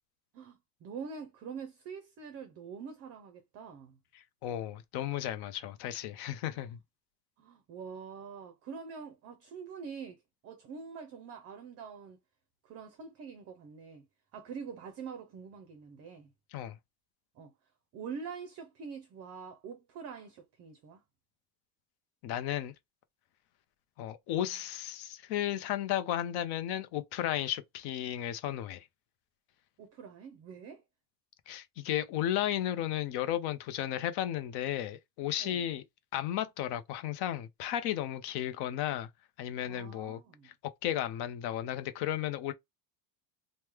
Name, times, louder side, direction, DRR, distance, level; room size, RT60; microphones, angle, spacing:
voice 1, 0.3-4.0 6.4-6.8 7.4-12.2 12.6-14.1 14.3-16.3 17.4-17.5 17.9-21.0 29.8-30.8 35.4-35.6 38.6-39.0 39.7-40.5, right 6 dB, 35° right, 0.5 m, -45 dB
voice 2, 4.4-6.8 16.5-16.8 22.2-22.7 24.0-28.8 31.5-35.8 36.1-39.1 39.4-40.5 40.8-42.5, left 12 dB, 55° left, 0.7 m, -34 dB
3.1 x 2.2 x 3.4 m
cardioid pair, 165°, 48 cm